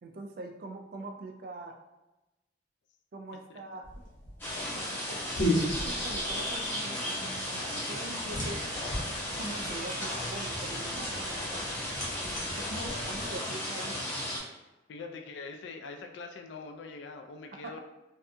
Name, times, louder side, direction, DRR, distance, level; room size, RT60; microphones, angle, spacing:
voice 1, 0.0-1.8 3.1-3.9 4.7-5.2 5.8-8.6 9.3-11.7 12.6-14.0 17.5-17.8, right 2 dB, 50° right, 4 dB, 0.3 m, -43 dB
sound 1, 3.8-13.4, equal, 45° left, 0.8 m, -36 dB
sound 2, 4.4-14.4, left 1 dB, 10° left, 0.7 m, -35 dB
sound 3, 8.3-13.3, right 1 dB, 75° right, 0.7 m, -47 dB
voice 2, 14.9-17.8, left 4 dB, 75° left, 5 dB, 0.3 m, -43 dB
2.7 x 2.2 x 2.5 m, 1.0 s
head